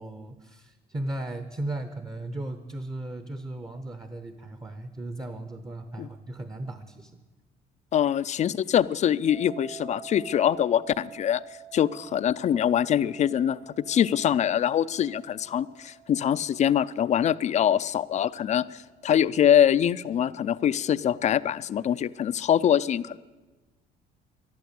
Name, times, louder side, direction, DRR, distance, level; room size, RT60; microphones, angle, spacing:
voice 1, 0.0-7.2, right 1 dB, 20° right, 9 dB, 0.9 m, -36 dB
voice 2, 7.9-11.4 11.7-23.2, left 9 dB, 45° left, 16 dB, 0.5 m, -24 dB
sound 1, 9.3-20.2, right 11 dB, 85° right, 2.2 m, -49 dB
12.0 x 11.5 x 8.3 m, 1.2 s
cardioid pair, 110°, 17 cm